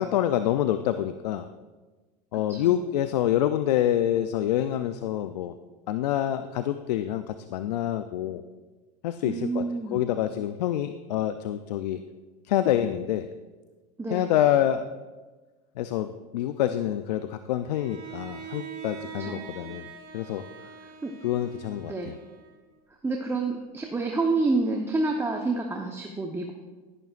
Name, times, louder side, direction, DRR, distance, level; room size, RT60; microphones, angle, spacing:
voice 1, 0.0-1.5 2.3-5.6 5.9-8.4 9.0-9.6 9.9-12.0 12.4-13.3 14.1-14.8 15.8-19.9 20.1-20.4 21.2-22.2, left 11 dB, 85° left, 10 dB, 0.5 m, -26 dB
voice 2, 9.2-10.0 14.0-14.3 19.2-19.5 21.0-21.1 21.8-22.1 23.0-26.5, right 3 dB, 10° right, 2 dB, 0.9 m, -28 dB
Bowed string instrument, 17.7-22.8, right 7 dB, 50° right, 1.8 m, -43 dB
12.0 x 11.0 x 2.5 m, 1.3 s
hypercardioid pair, 95°, 20 cm